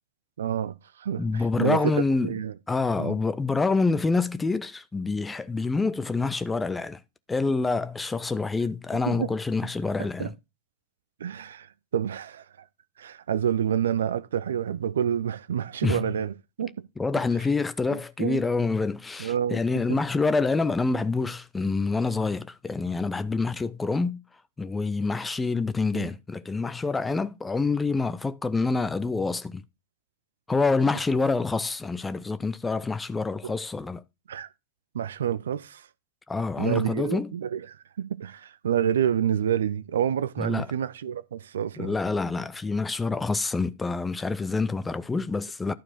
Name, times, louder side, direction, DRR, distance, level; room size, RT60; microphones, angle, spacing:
voice 1, 0.4-1.9 2.2-2.5 3.0-3.2 9.0-9.3 10.0-10.3 11.2-12.4 13.0-16.7 17.9-18.4 19.2-19.6 25.9-26.1 33.4-33.5 34.3-34.5 34.9-35.9 36.6-41.9, right 9 dB, 65° right, 0.5 m, -28 dB
voice 2, 1.2-2.3 2.7-7.0 7.3-10.3 15.8-16.0 17.0-24.2 24.6-29.6 30.5-34.0 36.3-37.3 40.4-40.7 41.8-45.7, left 3 dB, 10° left, 0.6 m, -27 dB
12.0 x 4.6 x 4.2 m
figure-of-eight pair, 90°, 0 cm